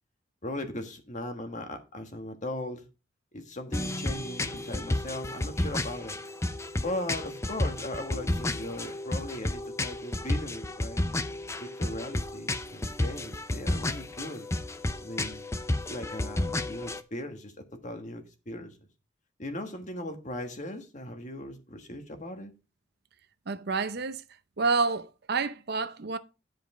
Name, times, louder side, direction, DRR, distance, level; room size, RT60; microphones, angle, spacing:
voice 1, 0.4-2.8 3.3-6.2 6.8-11.1 11.6-14.5 15.0-15.5 15.9-17.5 17.8-18.8 19.4-22.5, left 1 dB, 40° left, 1.6 m, -38 dB
sound 1, 3.7-17.0, left 1 dB, 15° left, 0.5 m, -32 dB
voice 2, 23.5-24.2 24.6-26.2, right 4 dB, 60° right, 0.7 m, -28 dB
10.5 x 5.1 x 4.9 m
head